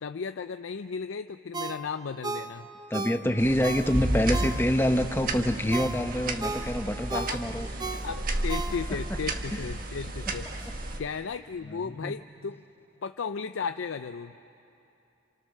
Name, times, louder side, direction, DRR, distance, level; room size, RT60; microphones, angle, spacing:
voice 1, 0.0-2.7 7.1-7.4 8.0-10.7 11.0-12.6 13.0-14.3, left 5 dB, 85° left, 10 dB, 0.5 m, -35 dB
Ringtone, 1.5-5.0 5.4-9.2 9.5-9.6, right 3 dB, 20° right, 0.8 m, -36 dB
voice 2, 2.9-7.9 8.9-9.2 9.5-9.7 11.7-12.2, equal, 10° left, 7 dB, 0.9 m, -27 dB
sound 1, 3.4-11.0, right 1 dB, 45° right, 1.5 m, -32 dB
29.0 x 27.5 x 6.6 m, 2.8 s
head